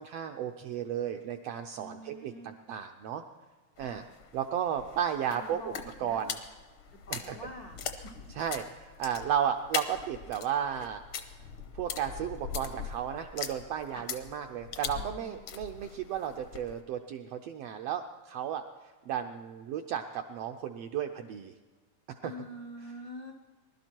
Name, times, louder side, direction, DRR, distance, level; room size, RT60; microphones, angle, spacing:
voice 1, 0.0-3.2 3.8-4.1 4.3-5.6 6.0-6.4 7.1-7.4 8.4-11.0 11.7-21.5 22.1-22.3, right 9 dB, 80° right, 5 dB, 1.4 m, -34 dB
voice 2, 1.7-2.5 3.8-4.1 5.3-6.2 6.9-7.8 8.0-8.1 13.9-14.1 14.9-15.4 22.2-23.3, equal, 85° left, 1 dB, 0.8 m, -46 dB
sound 1, 3.8-16.8, left 7 dB, 65° left, 1.3 m, -41 dB
21.0 x 12.0 x 4.5 m, 1.4 s
omnidirectional pair, 3.4 m